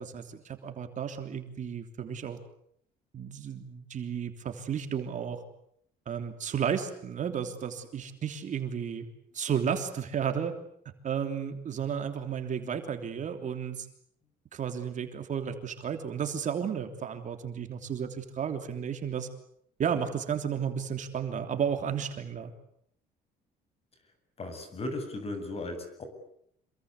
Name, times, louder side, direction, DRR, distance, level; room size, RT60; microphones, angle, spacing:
voice 1, 0.0-2.4 3.1-5.4 6.1-9.0 9.3-10.5 11.0-13.9 14.5-19.3 19.8-22.5, right 7 dB, 45° right, 6 dB, 3.2 m, -33 dB
voice 2, 24.4-26.0, left 2 dB, 35° left, 8 dB, 7.7 m, -36 dB
27.5 x 23.0 x 8.3 m, 0.70 s
cardioid pair, 110°, 17 cm